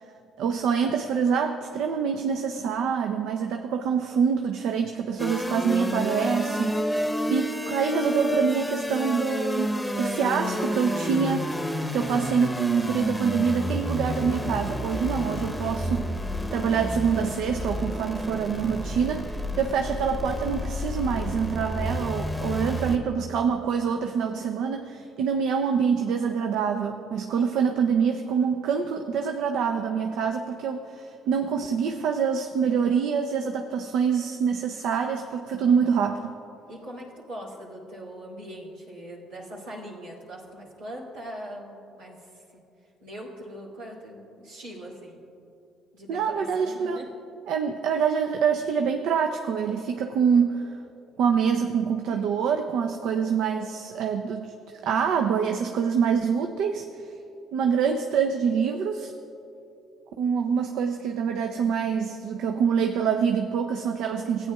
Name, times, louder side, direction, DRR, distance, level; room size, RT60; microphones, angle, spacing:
voice 1, 0.4-9.7 10.0-11.6 11.9-16.2 16.5-36.3 46.1-47.0 47.5-50.8 51.2-54.5 54.8-56.8 57.5-59.1 60.2-64.5, right 6 dB, 75° right, 5 dB, 0.5 m, -25 dB
sound 1, 5.2-23.0, equal, 5° left, 0.8 m, -30 dB
voice 2, 36.7-42.6 43.0-45.2 45.9-47.1 52.1-52.3, equal, 90° right, -6 dB, 2.3 m, -41 dB
16.0 x 8.9 x 2.3 m, 2.8 s
supercardioid pair, 65°, 0 cm